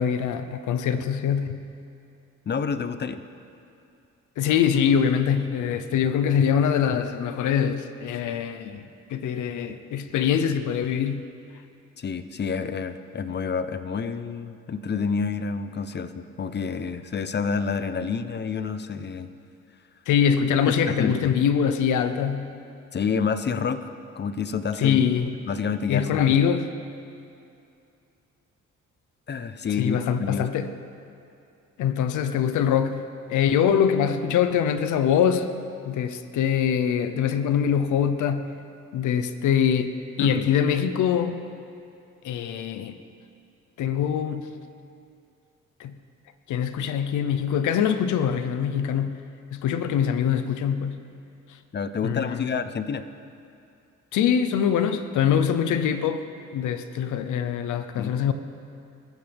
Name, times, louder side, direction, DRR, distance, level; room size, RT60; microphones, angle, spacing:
voice 1, 0.0-1.6 4.4-8.8 9.1-11.3 20.1-22.5 24.8-25.4 25.9-26.7 29.8-30.7 31.8-35.6 35.8-38.5 38.9-41.4 42.2-43.0 43.8-44.5 45.8-46.0 46.5-49.2 49.5-51.0 52.0-52.5 54.1-56.3 56.5-58.3, left 8 dB, 80° left, 10 dB, 0.8 m, -23 dB
voice 2, 2.5-3.2 12.0-19.3 20.7-21.3 22.9-23.9 24.2-25.0 25.5-26.4 29.3-30.5 40.2-40.5 51.7-53.0 58.0-58.2, left 5 dB, 35° left, 11 dB, 0.8 m, -28 dB
22.0 x 14.0 x 3.5 m, 2.6 s
cardioid pair, 90°, 30 cm